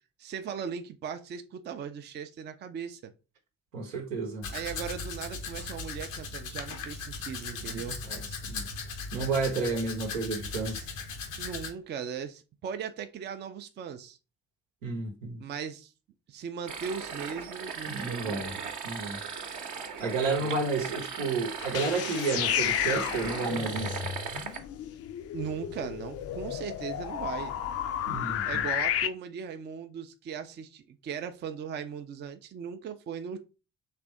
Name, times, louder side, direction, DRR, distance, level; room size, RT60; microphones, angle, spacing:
voice 1, 0.2-3.1 4.5-8.0 11.4-14.2 15.4-15.9 16.3-18.6 20.4-20.5 25.3-27.5 28.4-33.4, right 7 dB, 30° right, 0.4 m, -38 dB
voice 2, 3.7-4.5 7.7-8.6 9.1-10.9 14.8-15.4 17.9-18.5 18.8-19.2 20.0-24.0 28.1-28.6, right 4 dB, 75° right, 0.8 m, -31 dB
Domestic sounds home sounds, 4.4-11.7, left 4 dB, 80° left, 0.7 m, -38 dB
sound 1, 16.7-24.6, right 5 dB, 50° right, 0.9 m, -38 dB
sound 2, 21.6-29.1, left 11 dB, 40° left, 0.4 m, -32 dB
3.3 x 2.5 x 4.5 m
figure-of-eight pair, 40°, 39 cm